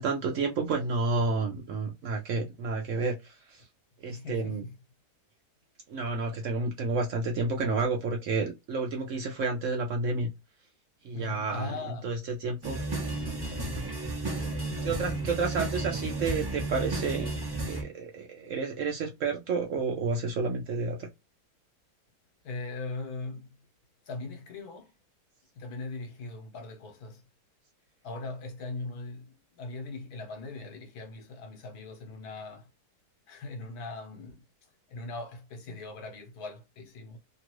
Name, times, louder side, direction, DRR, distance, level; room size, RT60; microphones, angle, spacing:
voice 1, 0.0-3.6 4.0-4.6 5.9-10.3 11.0-11.7 12.0-12.2 12.4-12.8 14.8-17.3 17.6-21.1, right 4 dB, 65° right, 0.9 m, -30 dB
voice 2, 4.1-4.6 11.1-12.1 22.4-23.6 24.1-24.9 25.5-27.2 28.0-32.7 33.3-34.4 34.9-37.2, left 3 dB, 70° left, 1.3 m, -40 dB
sound 1, 12.6-17.8, right 2 dB, 25° right, 0.6 m, -33 dB
2.9 x 2.4 x 3.0 m
omnidirectional pair, 1.7 m